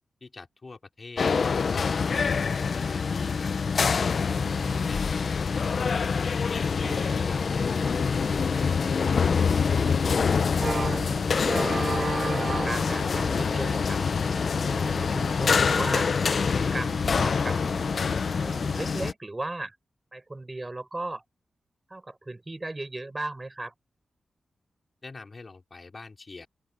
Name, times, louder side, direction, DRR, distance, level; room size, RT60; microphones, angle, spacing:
voice 1, 0.2-1.3 2.0-3.6 4.9-6.3 6.8-7.7 8.0-9.3 25.0-26.5, left 3 dB, 35° left, 5.1 m, -45 dB
sound 1, 1.2-19.1, left 5 dB, 60° left, 0.7 m, -25 dB
voice 2, 4.3-5.1 10.5-11.1 11.8-14.0 14.7-16.1 16.6-17.6 18.4-19.8 20.1-21.2 21.9-23.7, right 2 dB, 20° right, 6.6 m, -37 dB
sound 2, 6.8-18.6, right 3 dB, 40° right, 1.8 m, -37 dB
open air
wide cardioid pair, 115°, 0 cm